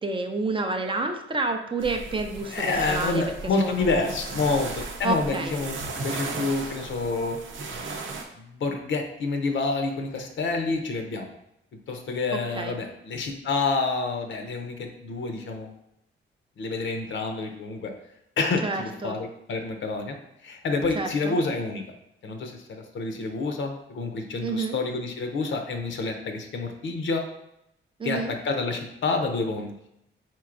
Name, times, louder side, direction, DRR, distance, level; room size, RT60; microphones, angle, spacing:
voice 1, 0.0-3.2 3.6-4.2 5.0-5.6 12.3-12.8 18.6-19.2 20.9-21.4 24.4-24.8 28.0-28.3, right 3 dB, 25° right, 5 dB, 0.4 m, -29 dB
sound 1, 1.8-8.2, right 3 dB, 75° right, 0.7 m, -36 dB
voice 2, 2.5-7.4 8.3-11.3 11.9-15.7 16.6-17.9 18.4-20.2 20.4-21.8 22.2-27.2 28.0-29.7, left 3 dB, 70° left, 4 dB, 0.6 m, -28 dB
4.5 x 3.9 x 2.5 m, 0.80 s
wide cardioid pair, 140°, 20 cm